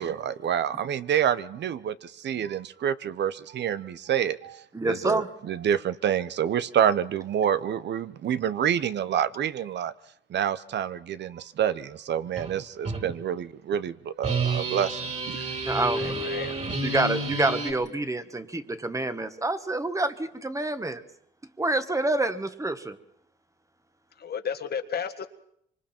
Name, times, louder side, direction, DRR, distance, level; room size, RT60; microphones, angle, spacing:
voice 1, 0.0-9.9 10.3-15.0 15.2-15.4, right 9 dB, 60° right, 15 dB, 0.8 m, -28 dB
voice 2, 4.7-5.3 15.6-16.3 16.8-21.0 21.6-23.0, right 2 dB, 15° right, 10 dB, 1.5 m, -27 dB
sound 1, 12.4-12.5 12.8-13.0 14.2-17.7, right 3 dB, 35° right, 3.8 m, -30 dB
voice 3, 15.9-16.6 24.2-25.3, left 7 dB, 55° left, 8 dB, 1.6 m, -33 dB
25.5 x 24.0 x 4.4 m, 0.69 s
cardioid pair, 90°, 20 cm